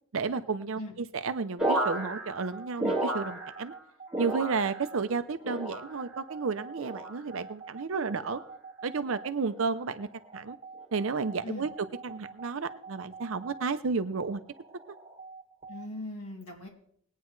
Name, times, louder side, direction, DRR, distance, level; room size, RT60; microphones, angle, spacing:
voice 1, 0.1-3.7 4.2-8.4 8.8-10.1 10.3-10.6 10.9-11.7 12.0-14.4, right 4 dB, 70° right, 10 dB, 0.6 m, -32 dB
sound 1, 1.6-3.8 4.1-5.0 5.4-6.1 6.8-7.2 8.1-8.5 9.4-9.7, right 1 dB, 5° right, 2.0 m, -33 dB
sound 2, 2.4-15.9, right 4 dB, 25° right, 1.7 m, -47 dB
voice 2, 15.7-16.7, left 1 dB, 90° left, -1 dB, 2.4 m, -39 dB
21.0 x 9.2 x 3.2 m, 0.63 s
head